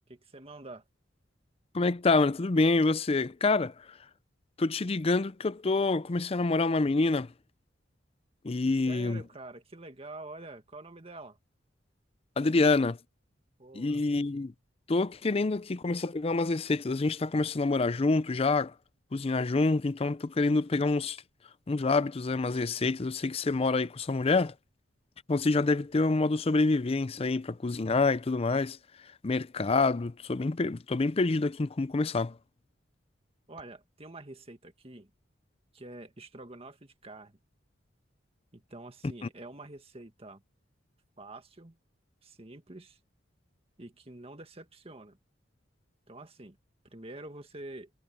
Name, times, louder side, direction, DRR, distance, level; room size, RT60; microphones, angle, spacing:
voice 1, 0.1-0.8 8.9-11.4 13.6-14.0 33.5-35.1 35.7-37.4 38.5-40.4 41.2-41.8 42.2-43.0 43.8-45.2 46.1-46.6 46.9-47.9, right 2 dB, 30° right, 1.9 m, -46 dB
voice 2, 1.7-3.9 4.6-7.3 8.4-9.2 12.4-13.0 13.7-14.5 14.9-18.7 19.1-21.2 21.7-24.5 25.3-28.8 29.2-32.4 39.2-39.3, left 3 dB, 30° left, 0.5 m, -27 dB
head